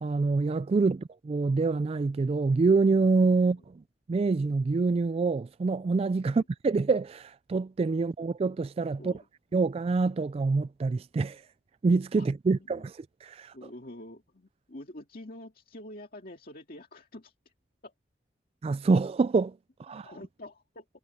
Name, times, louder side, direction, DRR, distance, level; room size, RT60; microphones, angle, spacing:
voice 1, 0.0-3.8 4.1-9.1 9.5-11.4 11.8-13.5 18.6-20.1, right 4 dB, 35° right, 0.3 m, -26 dB
voice 2, 9.0-9.6 12.2-12.3 12.5-12.9 13.5-17.5 17.8-17.9 19.9-20.9, left 1 dB, 55° left, 2.2 m, -47 dB
head